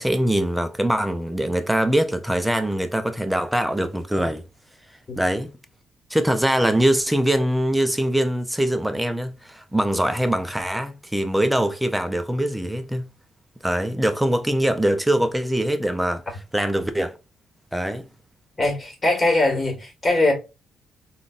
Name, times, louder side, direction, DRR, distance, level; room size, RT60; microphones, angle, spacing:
voice 1, 0.0-4.4 5.2-5.5 6.1-13.1 13.6-16.2 16.5-17.1 17.7-18.0, right 1 dB, 5° right, 0.6 m, -23 dB
voice 2, 18.6-20.3, left 2 dB, 25° left, 1.7 m, -21 dB
3.7 x 2.4 x 2.5 m
cardioid pair, 75°, 0 cm